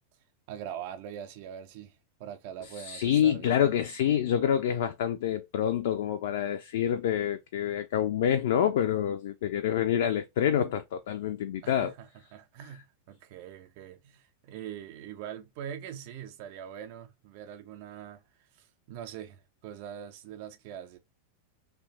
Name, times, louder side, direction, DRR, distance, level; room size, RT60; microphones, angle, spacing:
voice 1, 0.5-3.7 11.6-21.0, right 9 dB, 45° right, 0.4 m, -43 dB
voice 2, 2.8-11.9, left 9 dB, 55° left, 0.3 m, -27 dB
3.0 x 2.2 x 2.7 m
figure-of-eight pair, 90°, 0 cm